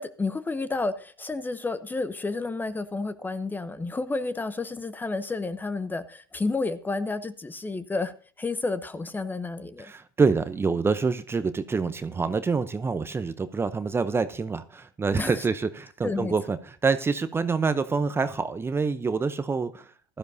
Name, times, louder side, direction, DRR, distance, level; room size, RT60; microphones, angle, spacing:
voice 1, 0.0-8.1 8.4-9.9 15.2-15.4 16.0-16.3, left 3 dB, 15° left, 14 dB, 0.8 m, -30 dB
voice 2, 9.8-20.2, right 4 dB, 20° right, 12 dB, 0.7 m, -26 dB
16.0 x 12.0 x 2.7 m, 0.41 s
hypercardioid pair, 80°, 12 cm